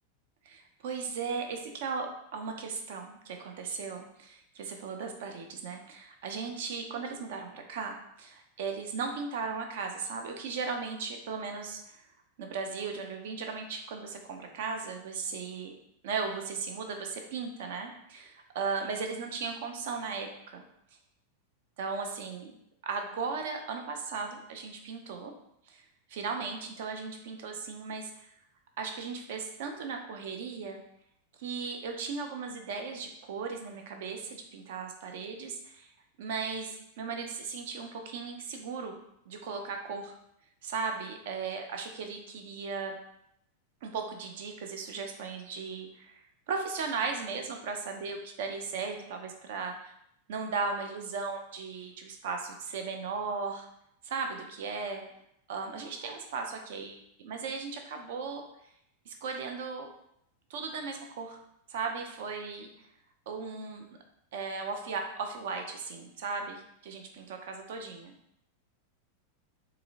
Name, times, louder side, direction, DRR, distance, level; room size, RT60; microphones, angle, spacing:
voice 1, 0.5-12.0 12.4-15.7 16.0-20.6 21.8-22.5 22.8-25.3 25.7-25.8 26.1-28.3 28.8-30.8 31.4-35.9 36.2-39.0 39.3-40.2 40.6-43.0 43.8-49.9 50.3-53.7 54.0-55.0 55.5-58.4 59.1-59.9 60.5-61.4 61.7-62.7 63.3-63.9 64.3-68.1, right 5 dB, 55° right, 4 dB, 0.4 m, -37 dB
3.6 x 2.0 x 2.5 m, 0.76 s
figure-of-eight pair, 90°, 0 cm